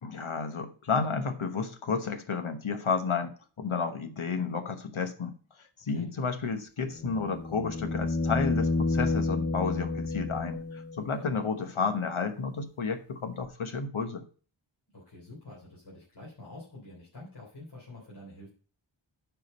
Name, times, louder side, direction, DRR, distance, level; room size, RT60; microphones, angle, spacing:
voice 1, 0.0-14.2, left 5 dB, 85° left, 8 dB, 1.2 m, -32 dB
sound 1, 6.9-11.0 13.4-13.5, left 3 dB, 30° left, 1.3 m, -30 dB
voice 2, 14.9-18.5, left 2 dB, 55° left, -5 dB, 3.4 m, -47 dB
9.4 x 5.0 x 5.3 m, 0.40 s
wide cardioid pair, 65°, 47 cm